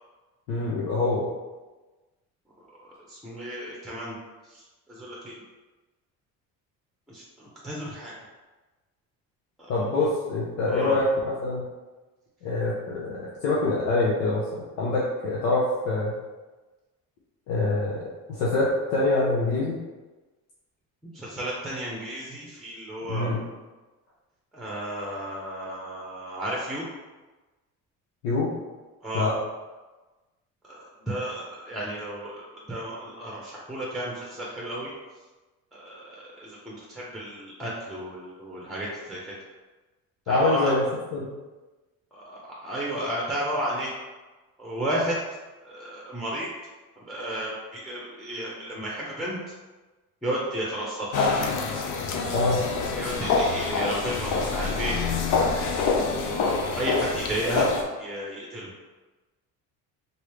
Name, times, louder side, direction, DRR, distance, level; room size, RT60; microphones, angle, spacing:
voice 1, 0.5-1.3 9.7-11.7 12.4-16.2 17.5-18.0 18.3-19.8 23.1-23.4 28.2-28.5 29.1-29.3 40.3-41.3 52.3-52.6, left 2 dB, 85° left, -6 dB, 0.8 m, -25 dB
voice 2, 2.8-4.2 4.9-5.3 7.1-8.1 9.6-9.7 10.7-10.9 21.0-23.3 24.5-26.8 29.0-29.3 30.6-34.9 35.7-39.3 40.3-40.7 42.1-43.9 44.6-45.1 45.6-46.5 47.1-49.4 50.2-51.2 52.9-55.0 55.7-57.7 58.0-58.7, right 1 dB, ahead, -4 dB, 0.8 m, -33 dB
sound 1, 51.1-57.8, left 4 dB, 55° left, 0.6 m, -26 dB
3.1 x 2.7 x 3.1 m, 1.2 s
supercardioid pair, 85°, 37 cm